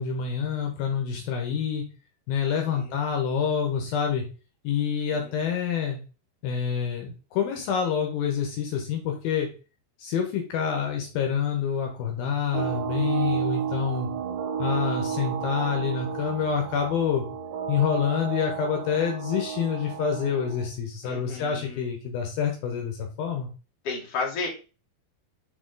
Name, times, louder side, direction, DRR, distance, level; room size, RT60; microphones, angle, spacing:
voice 1, 0.0-1.8 2.3-4.2 4.6-6.0 6.4-9.5 10.0-14.1 14.6-17.2 17.7-23.5, left 7 dB, 75° left, 2 dB, 2.8 m, -27 dB
voice 2, 2.4-3.0 5.1-5.3 15.1-15.3 21.0-21.9 23.8-24.5, left 4 dB, 45° left, -2 dB, 2.4 m, -34 dB
sound 1, 12.5-20.7, right 8 dB, 85° right, 3.0 m, -32 dB
6.8 x 3.9 x 3.8 m, 0.34 s
omnidirectional pair, 4.6 m